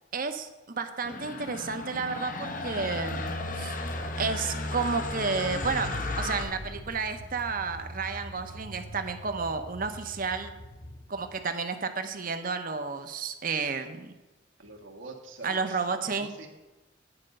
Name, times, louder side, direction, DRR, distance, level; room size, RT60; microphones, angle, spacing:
voice 1, 0.1-3.7 4.2-10.5 11.1-14.1 15.4-16.3, right 4 dB, 45° right, 8 dB, 0.8 m, -31 dB
sound 1, 1.0-6.4, left 2 dB, 45° left, 0.9 m, -34 dB
Car / Engine, 3.1-11.4, left 1 dB, 65° left, 3.0 m, -42 dB
voice 2, 14.6-16.5, right 3 dB, 80° right, 1 dB, 1.6 m, -45 dB
9.9 x 5.2 x 7.7 m, 1.1 s
head